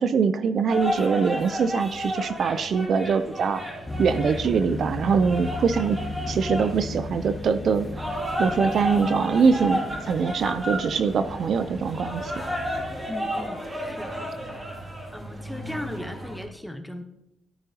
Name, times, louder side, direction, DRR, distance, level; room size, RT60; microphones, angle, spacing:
voice 1, 0.0-3.6 4.0-6.0 6.3-7.9 8.4-12.3, right 5 dB, 55° right, 12 dB, 0.5 m, -23 dB
sound 1, 0.7-16.4, equal, 15° right, 2.4 m, -33 dB
sound 2, 3.9-13.0, left 2 dB, 20° left, 1.7 m, -36 dB
voice 2, 13.1-14.7 15.1-17.0, left 1 dB, 5° left, 7 dB, 1.1 m, -37 dB
13.5 x 9.1 x 2.9 m, 0.90 s
cardioid pair, 90°, 0 cm